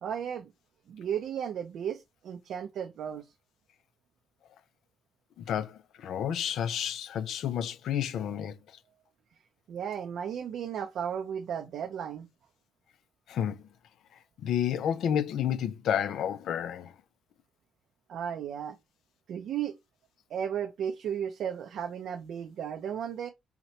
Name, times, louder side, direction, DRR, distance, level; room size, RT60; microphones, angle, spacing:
voice 1, 0.0-0.5 0.9-3.3 9.7-12.3 18.1-18.8 19.3-19.8 20.3-23.3, right 8 dB, 70° right, 0.5 m, -34 dB
voice 2, 5.4-8.6 13.3-13.6 14.4-16.9, left 9 dB, 75° left, 0.5 m, -30 dB
5.7 x 2.2 x 3.0 m
cardioid pair, 90°, 0 cm